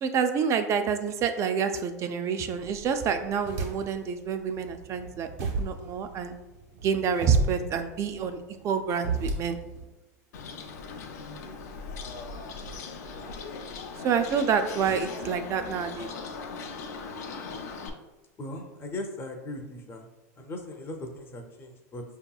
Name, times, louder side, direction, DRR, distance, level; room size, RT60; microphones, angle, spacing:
voice 1, 0.0-5.3 5.6-6.4 6.8-9.6 14.0-16.1, right 6 dB, 35° right, 8 dB, 0.4 m, -28 dB
sound 1, 2.6-4.1 4.5-9.8, right 3 dB, 60° right, 1.3 m, -33 dB
Bird, 10.3-17.9, left 4 dB, 80° left, 0.5 m, -39 dB
voice 2, 11.3-11.6 18.4-20.1 20.4-22.0, left 1 dB, 25° left, 3 dB, 0.5 m, -39 dB
5.1 x 2.8 x 2.3 m, 1.0 s
supercardioid pair, 115°, 9 cm